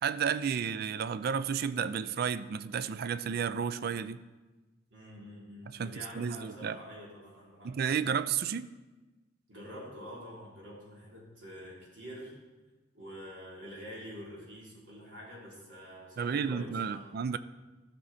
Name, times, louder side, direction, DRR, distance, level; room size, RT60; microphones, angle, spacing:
voice 1, 0.0-4.2 5.7-6.8 7.6-8.7 16.2-17.4, right 7 dB, 55° right, 14 dB, 0.4 m, -32 dB
voice 2, 4.9-7.8 9.5-12.4 12.9-17.1, equal, 80° right, -4 dB, 3.3 m, -46 dB
14.5 x 6.2 x 4.2 m, 1.2 s
head